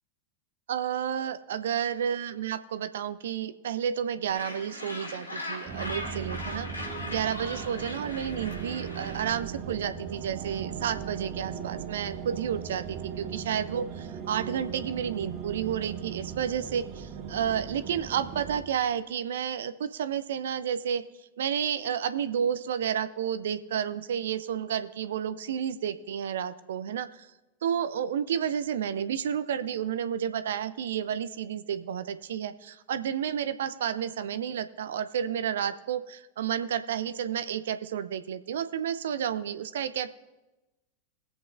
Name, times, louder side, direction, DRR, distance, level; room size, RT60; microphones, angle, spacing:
voice 1, 0.7-6.7 7.1-21.0 21.4-27.3 27.6-40.1, right 8 dB, 60° right, 13 dB, 0.5 m, -31 dB
Gull seagull, 4.3-9.3, left 1 dB, 75° left, 2.6 m, -39 dB
sound 1, 5.7-18.6, right 7 dB, 35° right, 1.2 m, -38 dB
20.0 x 8.0 x 2.5 m, 1.1 s
figure-of-eight pair, 90°, 0 cm